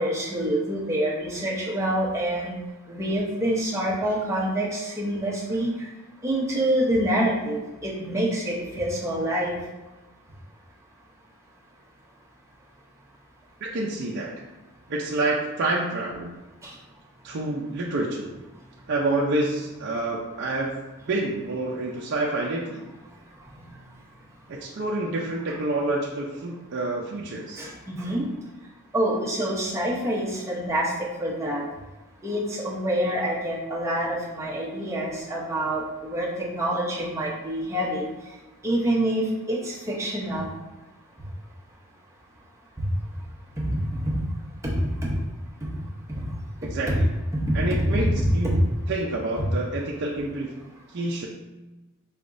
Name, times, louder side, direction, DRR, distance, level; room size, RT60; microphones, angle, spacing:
voice 1, 0.0-2.5 2.9-5.9 6.2-9.6 16.6-16.7 27.6-28.3 28.9-31.6 32.2-38.1 38.6-40.5 43.6-44.2 44.6-45.2 45.7-45.8 46.1-46.3 46.9-47.0 47.3-48.6, right 1 dB, 15° right, -4 dB, 0.8 m, -26 dB
voice 2, 13.6-14.3 14.9-16.3 17.2-18.3 18.9-20.7 21.1-22.8 24.5-27.6 46.6-47.1 47.5-48.6 48.9-50.5 50.9-51.3, right 2 dB, 50° right, -3 dB, 0.5 m, -28 dB
4.7 x 3.4 x 2.5 m, 1.1 s
head